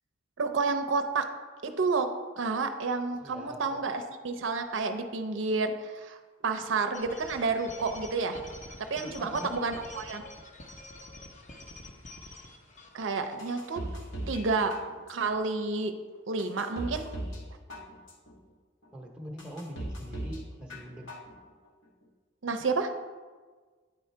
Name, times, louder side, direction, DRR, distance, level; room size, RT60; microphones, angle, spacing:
voice 1, 0.4-1.3 1.6-2.1 2.4-6.2 6.4-8.4 8.9-10.2 12.9-13.8 14.3-14.8 15.1-15.9 16.3-17.2 22.4-22.9, right 4 dB, 65° right, 6 dB, 0.5 m, -30 dB
voice 2, 3.2-3.8 9.0-9.7 18.9-21.1, equal, 5° right, 0 dB, 0.8 m, -43 dB
sound 1, 6.9-14.3, left 1 dB, 40° left, 0.8 m, -47 dB
sound 2, 13.4-14.4 14.7-15.3 15.8-15.9 16.4-17.4 17.7-18.3 18.8-18.9 19.4-20.4 20.7-21.3 21.6-21.7, right 1 dB, 65° left, 1.1 m, -38 dB
9.0 x 3.8 x 4.4 m, 1.4 s
head